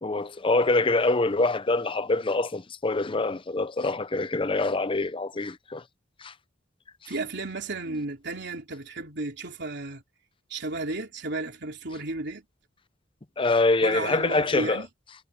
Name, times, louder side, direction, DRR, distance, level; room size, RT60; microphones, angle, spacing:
voice 1, 0.0-5.8 6.2-6.3 13.4-14.8, left 2 dB, 25° left, 0.7 m, -25 dB
voice 2, 7.1-10.0 10.5-12.4 13.8-14.9, right 3 dB, 60° right, 3.4 m, -33 dB
head